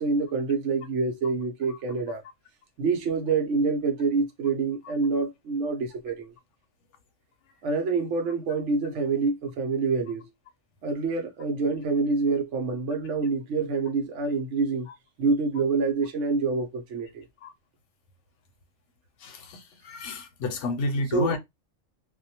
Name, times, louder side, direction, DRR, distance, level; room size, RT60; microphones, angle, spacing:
voice 1, 0.0-2.2 2.8-6.3 7.6-10.3 10.8-14.9 15.2-17.2 20.9-21.4, right 4 dB, 70° right, 1.0 m, -26 dB
voice 2, 19.2-21.4, left 3 dB, 70° left, 0.9 m, -30 dB
2.6 x 2.1 x 2.7 m
omnidirectional pair, 1.3 m